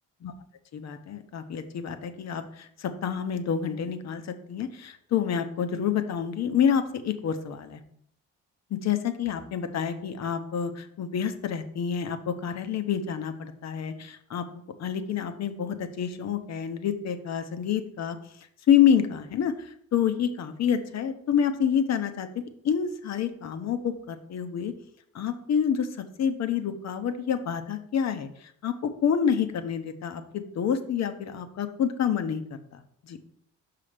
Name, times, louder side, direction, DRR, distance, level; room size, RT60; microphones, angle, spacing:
voice 1, 0.7-7.8 8.7-14.5 14.8-18.2 18.7-24.7 25.1-33.2, left 8 dB, 60° left, 9 dB, 0.9 m, -28 dB
5.8 x 5.6 x 5.0 m, 0.67 s
cardioid pair, 90°, 30 cm